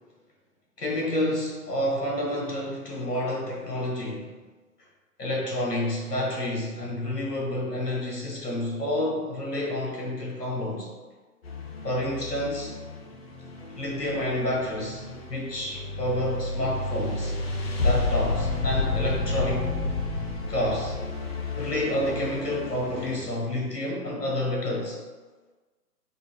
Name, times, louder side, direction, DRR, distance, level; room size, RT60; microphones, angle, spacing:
voice 1, 0.8-4.3 5.2-10.9 11.8-12.7 13.8-17.3 17.8-19.7 20.5-21.0 21.5-25.0, left 1 dB, 75° left, -2 dB, 1.4 m, -29 dB
sound 1, 11.4-23.2, left 3 dB, 40° left, 0.5 m, -31 dB
4.3 x 2.6 x 3.4 m, 1.3 s
figure-of-eight pair, 130°, 48 cm